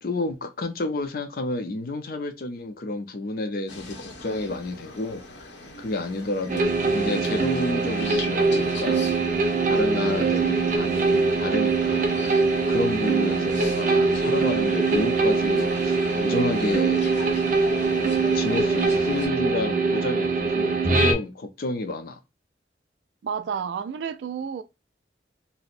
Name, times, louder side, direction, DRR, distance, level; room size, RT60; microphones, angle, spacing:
voice 1, 0.0-5.5 5.8-9.1 9.7-17.1 18.3-22.2, left 2 dB, 55° left, 0.5 m, -30 dB
sound 1, 3.7-19.3, left 3 dB, 85° left, 1.0 m, -40 dB
sound 2, 6.5-21.1, right 4 dB, 45° right, 0.7 m, -23 dB
voice 2, 23.2-24.6, right 7 dB, 75° right, 0.3 m, -30 dB
4.2 x 2.0 x 2.5 m
head